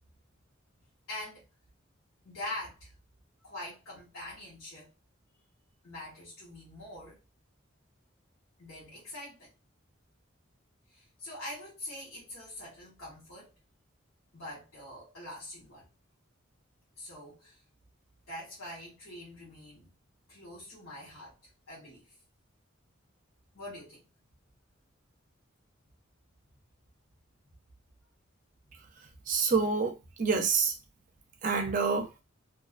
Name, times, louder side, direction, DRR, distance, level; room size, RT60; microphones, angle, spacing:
voice 1, 1.1-1.4 2.2-2.9 3.4-4.9 5.8-7.2 8.6-9.5 10.9-13.5 14.3-15.9 17.0-17.6 18.3-19.9 20.3-21.4 21.7-22.0 23.5-24.0, left 1 dB, 85° left, 1.1 m, -44 dB
voice 2, 29.3-30.7 31.4-32.1, right 5 dB, 40° right, 0.4 m, -27 dB
2.5 x 2.1 x 2.4 m
head